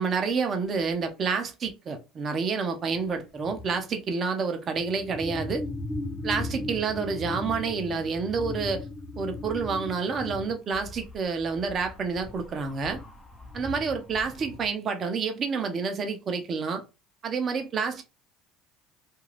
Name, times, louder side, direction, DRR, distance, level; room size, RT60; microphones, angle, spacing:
voice 1, 0.0-5.6 6.2-8.9 9.2-13.0 13.5-16.8 17.2-18.0, right 5 dB, 45° right, 0.6 m, -29 dB
sound 1, 2.9-3.1 3.4-3.8 4.7-14.7, left 2 dB, 20° left, 0.8 m, -37 dB
2.4 x 2.3 x 3.1 m
hypercardioid pair, 75°, 0 cm